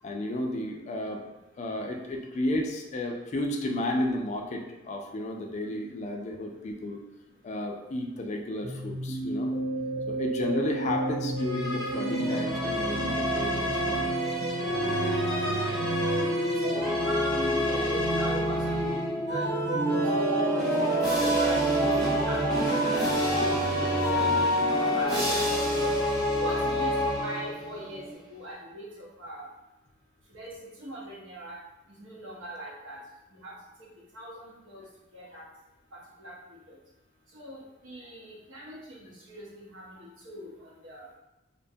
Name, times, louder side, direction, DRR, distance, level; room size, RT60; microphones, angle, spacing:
voice 1, 0.0-1.2 1.6-7.0 7.4-9.5 10.1-14.0 40.0-40.1, left 1 dB, 35° left, 2 dB, 0.3 m, -32 dB
sound 1, 8.6-28.1, right 2 dB, 40° right, 0.4 m, -31 dB
sound 2, 11.4-19.2 19.8-27.7, left 1 dB, 20° right, 1.1 m, -29 dB
voice 2, 16.6-19.0 19.3-20.7 21.2-23.1 23.4-24.4 24.6-25.9 26.4-29.5 30.3-31.6 32.0-33.0 33.3-33.6 34.1-34.8 35.1-35.5 36.2-36.3 36.7-36.8 37.3-41.0, right 1 dB, 90° right, -5 dB, 0.8 m, -41 dB
sound 3, 19.3-24.2, right 2 dB, 60° right, 0.8 m, -32 dB
2.6 x 2.2 x 2.6 m, 0.98 s
head